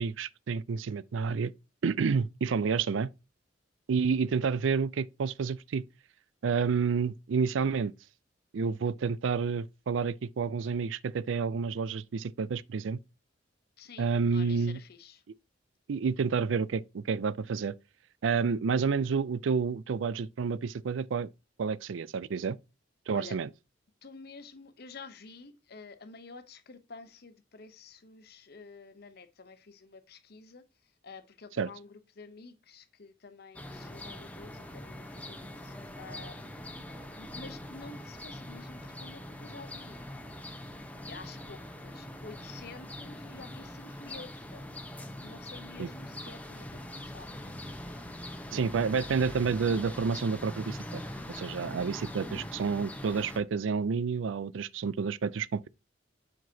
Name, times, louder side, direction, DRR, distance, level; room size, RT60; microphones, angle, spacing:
voice 1, 0.0-1.5 1.8-3.1 3.9-5.8 6.4-7.9 8.5-13.0 14.0-14.8 15.9-17.7 18.2-21.3 21.6-22.6 23.1-23.5 31.6-31.7 45.8-45.9 48.5-51.0 51.3-55.7, right 5 dB, 85° right, 0.4 m, -29 dB
voice 2, 13.8-15.2 23.1-23.4 24.0-40.2 41.1-44.7 45.1-47.3, left 4 dB, 55° left, 0.8 m, -50 dB
sound 1, 33.5-53.4, left 1 dB, 10° left, 0.9 m, -43 dB
7.6 x 5.8 x 2.8 m
head